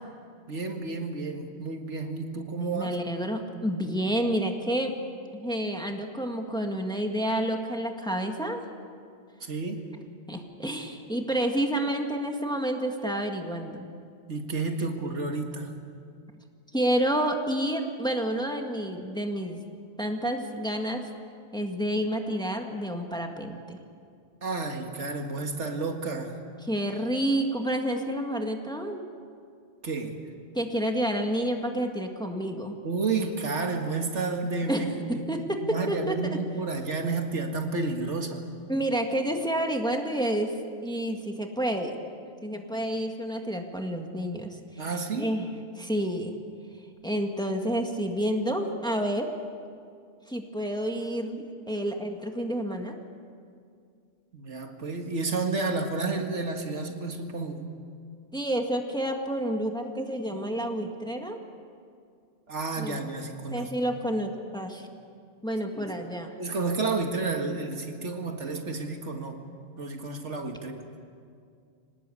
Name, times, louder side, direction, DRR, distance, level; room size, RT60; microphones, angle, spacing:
voice 1, 0.5-3.0 9.4-9.8 14.3-15.7 24.4-26.4 29.8-30.1 32.8-35.3 35.7-38.4 44.8-45.3 54.3-57.7 62.5-63.7 65.8-65.9 66.4-69.4 69.8-70.8, right 3 dB, 80° right, 4 dB, 2.2 m, -31 dB
voice 2, 2.6-4.9 5.3-8.6 10.3-13.9 16.7-19.6 20.0-21.0 21.5-23.8 26.6-29.0 30.6-32.8 34.7-36.4 38.7-40.6 40.8-42.0 42.4-44.9 45.2-45.4 45.8-46.4 47.0-49.3 50.3-53.0 58.3-61.4 62.8-63.0 63.5-64.9 65.4-66.3, right 1 dB, 5° left, 3 dB, 1.7 m, -29 dB
26.0 x 19.0 x 8.5 m, 2.3 s
omnidirectional pair, 1.2 m